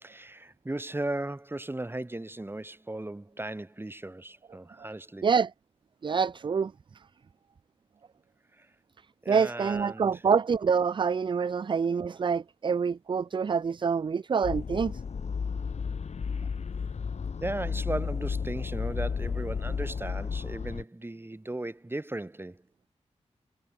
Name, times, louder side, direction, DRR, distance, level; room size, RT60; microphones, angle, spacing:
voice 1, 0.0-5.3 8.6-8.7 9.2-10.2 17.4-22.6, right 2 dB, 20° right, 2.2 m, -36 dB
voice 2, 6.0-6.7 9.3-15.0, right 6 dB, 40° right, 0.4 m, -26 dB
sound 1, 14.4-20.8, left 5 dB, 70° left, 1.6 m, -33 dB
wide cardioid pair, 80°, 12 cm